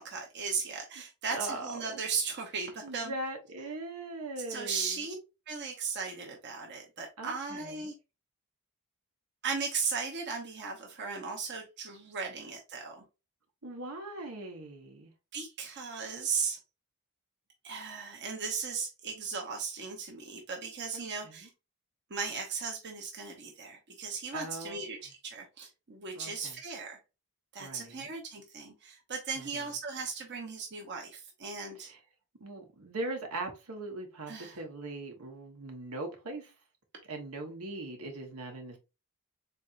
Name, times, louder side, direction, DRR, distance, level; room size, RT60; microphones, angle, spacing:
voice 1, 0.0-3.1 4.5-5.2 5.5-7.9 9.4-13.0 15.3-16.6 17.6-21.5 22.1-27.0 27.5-31.9 34.3-34.6, right 5 dB, 50° right, 0.8 m, -37 dB
voice 2, 1.3-2.0 2.8-5.0 7.2-7.9 12.3-12.4 13.6-15.1 20.9-21.5 24.3-24.9 26.1-26.6 27.6-28.1 29.3-29.7 31.8-32.0 32.4-36.5 37.1-38.8, right 2 dB, 85° right, 1.1 m, -40 dB
4.0 x 3.4 x 2.5 m
head